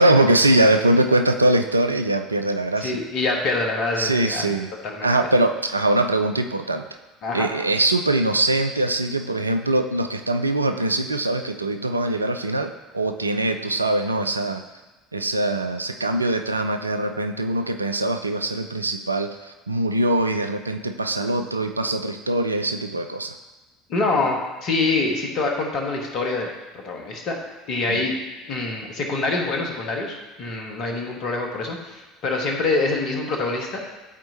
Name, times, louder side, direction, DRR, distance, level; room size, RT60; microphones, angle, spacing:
voice 1, 0.0-3.0 4.0-4.7 5.0-6.9 7.3-14.6 15.1-23.4 27.9-28.0, right 1 dB, 85° right, 7 dB, 0.3 m, -22 dB
voice 2, 2.8-4.5 4.8-5.1 7.2-7.5 23.9-26.5 26.7-27.4 27.7-28.2 28.5-33.9, left 3 dB, 50° left, 1 dB, 1.4 m, -25 dB
12.0 x 4.4 x 2.8 m, 1.2 s
figure-of-eight pair, 65°, 0 cm